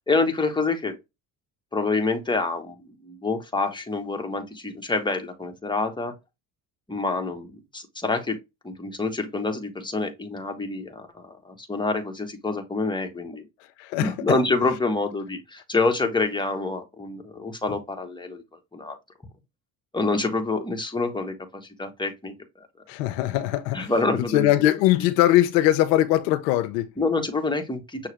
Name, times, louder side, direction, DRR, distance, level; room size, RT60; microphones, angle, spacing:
voice 1, 0.1-1.0 1.7-6.1 6.9-8.4 8.6-13.4 14.0-18.4 18.7-19.0 19.9-22.3 23.7-24.5 27.0-28.1, left 3 dB, 10° left, 1.2 m, -27 dB
voice 2, 13.8-14.4 22.9-26.9, left 14 dB, 85° left, 0.6 m, -21 dB
6.4 x 2.5 x 3.2 m
hypercardioid pair, 65°, 48 cm